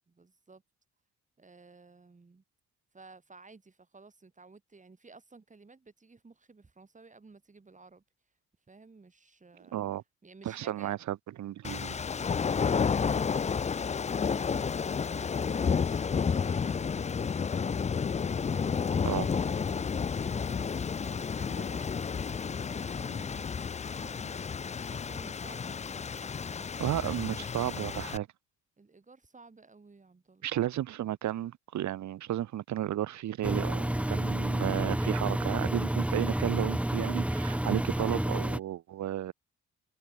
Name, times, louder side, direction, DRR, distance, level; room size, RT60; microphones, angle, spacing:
voice 1, 0.2-0.6 1.4-2.4 2.9-8.0 8.7-9.8 10.2-11.0 18.4-19.9 20.3-28.0 28.8-30.5, right 3 dB, 25° right, 5.1 m, -55 dB
voice 2, 9.7-10.0 10.4-11.9 19.0-19.3 26.8-28.2 30.4-39.3, right 12 dB, 70° right, 1.4 m, -33 dB
sound 1, 11.6-28.2, left 6 dB, 25° left, 0.5 m, -31 dB
Engine, 33.4-38.6, right 1 dB, 5° right, 1.1 m, -30 dB
cardioid pair, 90°, 30 cm